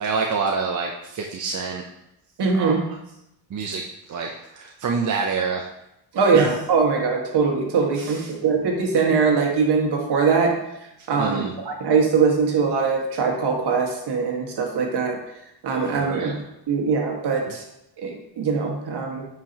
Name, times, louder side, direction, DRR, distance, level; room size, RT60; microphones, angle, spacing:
voice 1, 0.0-1.8 2.5-2.8 3.5-5.6 6.3-6.5 8.0-8.3 11.2-11.5 16.0-16.4, right 5 dB, 40° right, 1 dB, 0.7 m, -27 dB
voice 2, 2.4-2.8 6.1-10.6 11.1-15.2 15.6-16.3 16.7-17.6 18.0-19.2, right 5 dB, 55° right, 1 dB, 1.8 m, -22 dB
9.5 x 4.9 x 2.9 m, 0.85 s
cardioid pair, 90°, 46 cm